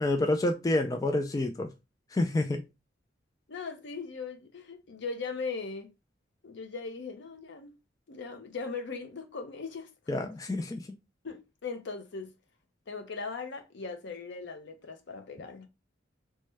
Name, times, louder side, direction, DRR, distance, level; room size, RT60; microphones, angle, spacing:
voice 1, 0.0-1.7 2.1-2.6 10.1-10.8, left 2 dB, 20° left, 0.3 m, -28 dB
voice 2, 3.5-5.9 6.4-7.7 8.1-9.9 10.2-10.3 11.2-12.3 12.9-15.7, left 4 dB, 65° left, 0.6 m, -39 dB
3.1 x 2.1 x 3.2 m
head